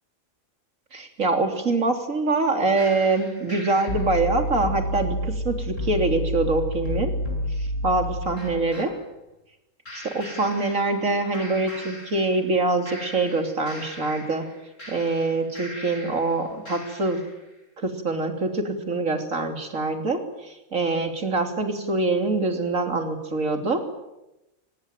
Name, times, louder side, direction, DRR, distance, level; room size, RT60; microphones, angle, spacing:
voice 1, 0.9-7.2 7.6-8.9 9.9-14.5 14.9-17.2 17.8-23.8, right 3 dB, 65° right, 5 dB, 3.7 m, -24 dB
sound 1, 2.8-8.9 9.9-11.1 11.3-12.6 12.9-16.3 16.7-17.3, equal, 60° left, 7.7 m, -32 dB
24.0 x 21.0 x 9.1 m, 0.94 s
omnidirectional pair, 1.5 m